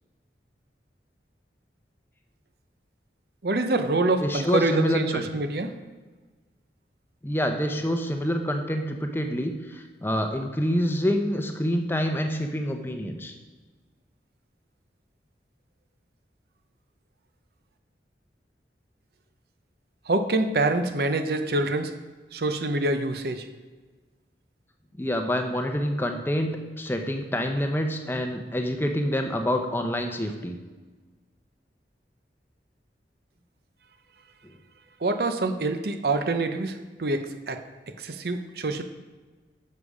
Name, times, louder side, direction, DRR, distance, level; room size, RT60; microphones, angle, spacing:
voice 1, 3.4-5.7 20.1-21.9 22.3-23.5 35.0-37.6 38.0-38.8, right 2 dB, 60° right, 7 dB, 0.7 m, -26 dB
voice 2, 4.2-5.3 7.2-13.3 25.0-30.6 34.4-34.5, equal, 10° left, 4 dB, 0.7 m, -27 dB
10.5 x 6.6 x 4.9 m, 1.3 s
head